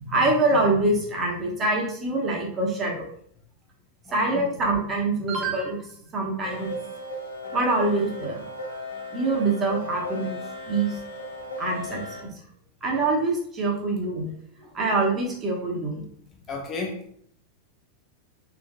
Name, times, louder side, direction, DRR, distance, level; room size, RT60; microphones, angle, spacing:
voice 1, 0.0-3.1 4.1-5.9 6.1-6.7 7.5-8.4 9.1-10.4 10.7-11.0 11.6-12.3 12.8-14.3 14.6-16.0, right 2 dB, 25° right, -1 dB, 1.1 m, -25 dB
sound 1, 6.4-12.2, left 1 dB, 80° left, 1.4 m, -36 dB
voice 2, 16.5-17.1, left 3 dB, 25° left, 1 dB, 0.5 m, -32 dB
3.6 x 3.4 x 2.5 m, 0.63 s
figure-of-eight pair, 90°, 0 cm